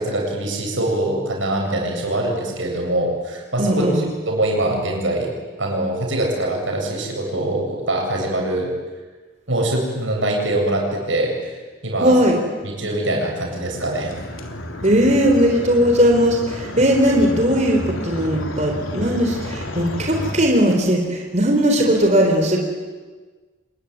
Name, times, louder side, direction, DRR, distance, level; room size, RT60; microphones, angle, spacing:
voice 1, 0.0-5.3 5.6-8.7 9.5-11.4 11.8-12.2 12.6-14.1 16.8-16.9, right 1 dB, 75° right, 1 dB, 7.7 m, -23 dB
voice 2, 3.6-4.0 12.0-12.4 14.8-22.6, equal, 35° right, 1 dB, 3.9 m, -18 dB
sound 1, 13.4-20.4, left 1 dB, 90° left, 3.5 m, -31 dB
26.0 x 21.5 x 9.5 m, 1.3 s
head